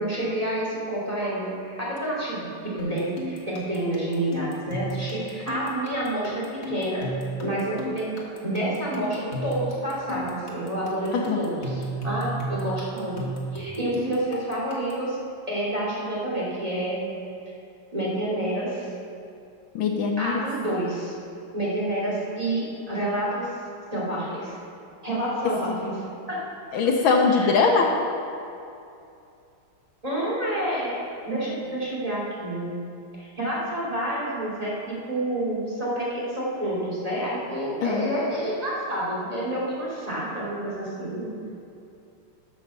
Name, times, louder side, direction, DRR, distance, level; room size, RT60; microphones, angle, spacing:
voice 1, 0.0-7.1 7.4-8.1 8.4-13.2 13.5-15.2 15.5-17.0 17.9-18.9 20.2-21.2 21.5-23.5 23.9-24.6 25.0-26.0 26.3-26.4 27.3-27.5 30.0-31.0 31.2-32.8 33.2-41.3, right 1 dB, 15° right, -7 dB, 2.8 m, -28 dB
sound 1, 2.8-15.1, right 1 dB, 35° left, 1.6 m, -34 dB
voice 2, 19.7-20.4 25.7-25.8 26.7-28.0 37.8-38.1, left 4 dB, 70° left, 2 dB, 1.5 m, -21 dB
12.0 x 6.3 x 6.7 m, 2.6 s
omnidirectional pair, 2.4 m